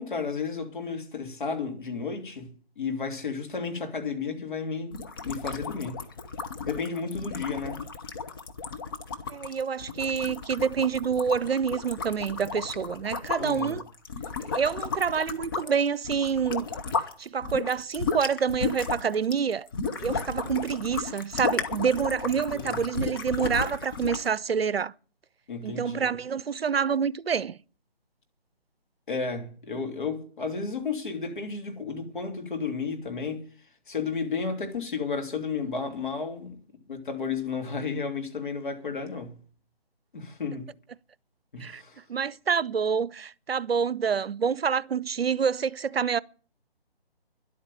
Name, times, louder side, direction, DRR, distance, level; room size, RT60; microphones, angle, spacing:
voice 1, 0.0-6.0 6.6-7.8 13.4-13.8 22.5-22.8 25.5-26.1 29.1-33.5 33.9-36.6 36.9-39.4 40.1-40.7 41.5-42.0, left 5 dB, 55° left, 3.1 m, -33 dB
sound 1, 4.9-17.1 17.4-24.3, left 5 dB, 25° left, 0.8 m, -34 dB
voice 2, 9.3-13.8 14.4-16.7 17.2-19.7 20.0-24.9 25.6-27.6 41.6-41.8 42.1-46.2, right 6 dB, 75° right, 0.6 m, -27 dB
11.0 x 8.6 x 9.1 m
figure-of-eight pair, 150°, 31 cm